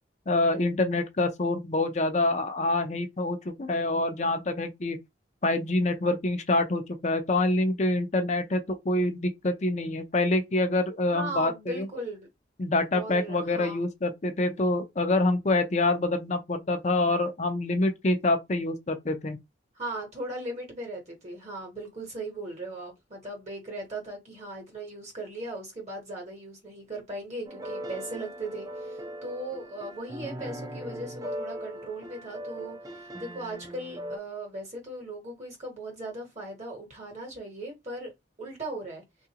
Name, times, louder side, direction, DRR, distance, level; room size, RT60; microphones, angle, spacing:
voice 1, 0.3-5.0 5.4-11.9 12.6-19.4, left 2 dB, 40° left, 0.5 m, -26 dB
voice 2, 11.1-12.3 12.9-13.8 19.7-38.1 38.4-39.0, right 1 dB, 40° right, 1.0 m, -38 dB
sound 1, 27.4-34.2, equal, 20° right, 0.5 m, -39 dB
3.7 x 2.4 x 2.8 m
head